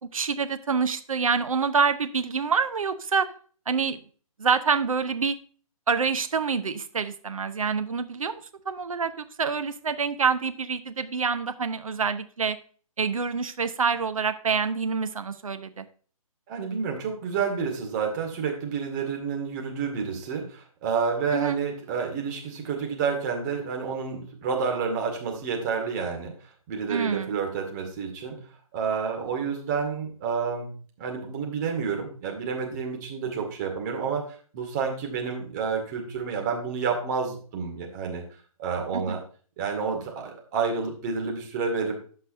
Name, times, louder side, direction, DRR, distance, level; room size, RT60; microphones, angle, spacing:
voice 1, 0.0-3.3 3.7-4.0 4.4-5.4 5.9-8.4 8.7-12.6 13.0-15.9 21.3-21.6 26.9-27.4 38.9-39.2, right 5 dB, 65° right, 10 dB, 0.9 m, -26 dB
voice 2, 16.5-26.3 26.7-28.4 28.7-30.7 31.0-34.2 34.5-38.2 38.6-39.2 39.6-42.0, right 6 dB, 30° right, 1 dB, 2.0 m, -29 dB
14.5 x 5.5 x 2.7 m, 0.42 s
figure-of-eight pair, 135°, 19 cm